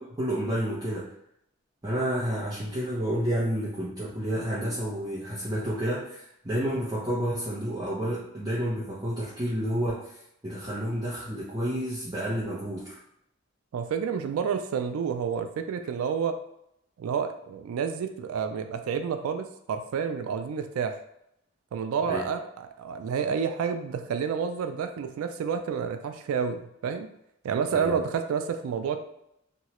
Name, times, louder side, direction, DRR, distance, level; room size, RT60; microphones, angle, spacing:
voice 1, 0.1-1.1 1.8-13.0 22.1-22.2 27.7-28.0, equal, 20° right, -9 dB, 0.6 m, -30 dB
voice 2, 13.7-16.3 17.0-20.9 21.7-27.1 27.4-29.0, right 6 dB, 90° right, 7 dB, 0.3 m, -29 dB
3.0 x 2.3 x 2.9 m, 0.77 s
head